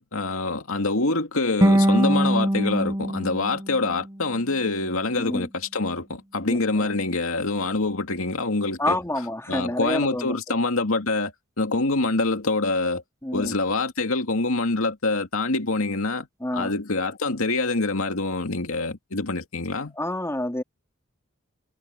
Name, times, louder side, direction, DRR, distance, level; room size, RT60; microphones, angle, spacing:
voice 1, 0.0-9.0 9.5-13.0 13.3-16.3 16.5-20.0, left 3 dB, 75° left, 2.3 m, -25 dB
sound 1, 1.6-4.7, equal, 15° right, 0.8 m, -23 dB
voice 2, 5.2-5.5 6.5-6.9 8.8-10.4 13.2-13.5 16.4-16.7 20.0-20.6, left 1 dB, 15° left, 3.0 m, -28 dB
head